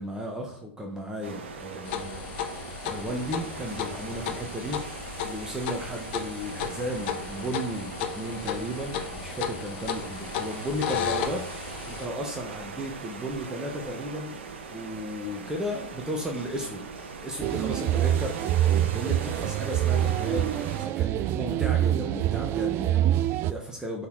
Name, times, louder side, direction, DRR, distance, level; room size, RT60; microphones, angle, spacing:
voice 1, 0.0-14.4 14.7-24.1, equal, 10° right, 1 dB, 1.1 m, -35 dB
sound 1, 1.2-20.9, right 4 dB, 70° right, 1.1 m, -40 dB
sound 2, 1.8-12.1, left 8 dB, 55° left, 0.9 m, -34 dB
sound 3, 17.4-23.5, right 12 dB, 40° right, 0.4 m, -25 dB
5.9 x 4.1 x 4.6 m, 0.66 s
hypercardioid pair, 95°, 7 cm